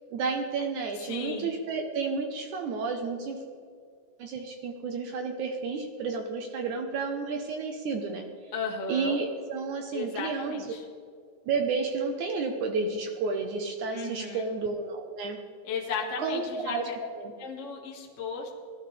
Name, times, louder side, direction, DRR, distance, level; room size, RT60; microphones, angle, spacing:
voice 1, 0.1-3.4 4.2-8.2 8.9-10.6 11.5-15.4 16.2-16.9 17.1-17.3, right 4 dB, 75° right, 4 dB, 1.9 m, -31 dB
voice 2, 1.0-1.5 8.5-9.2 9.9-10.8 13.9-14.5 15.6-16.9 17.4-18.6, left 4 dB, 50° left, -1 dB, 0.9 m, -35 dB
18.5 x 12.0 x 3.3 m, 2.2 s
omnidirectional pair, 4.6 m